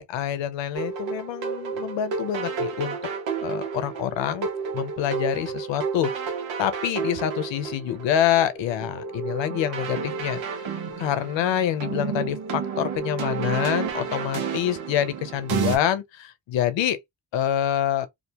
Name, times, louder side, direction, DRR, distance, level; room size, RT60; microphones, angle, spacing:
voice 1, 0.0-3.0 3.4-4.5 4.7-6.3 6.6-10.4 10.7-17.0 17.3-18.1, left 10 dB, 75° left, 0.7 m, -26 dB
sound 1, 0.7-15.8, right 6 dB, 80° right, 1.0 m, -31 dB
2.5 x 2.1 x 2.8 m
supercardioid pair, 55°, 45 cm